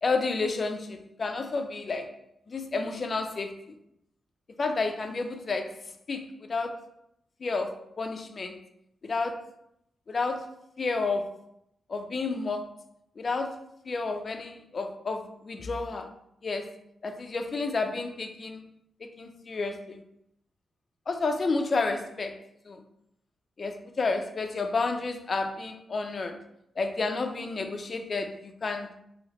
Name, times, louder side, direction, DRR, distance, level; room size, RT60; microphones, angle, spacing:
voice 1, 0.0-2.2 2.5-3.8 4.6-5.8 6.1-6.9 7.4-8.6 9.0-9.5 10.1-10.5 10.8-11.4 11.9-12.8 13.2-13.6 13.9-16.1 16.4-16.8 17.0-18.6 19.0-20.0 21.1-22.8 23.6-26.4 26.8-28.9, left 3 dB, 45° left, 5 dB, 0.4 m, -31 dB
3.1 x 2.7 x 2.9 m, 0.77 s
wide cardioid pair, 110°, 0 cm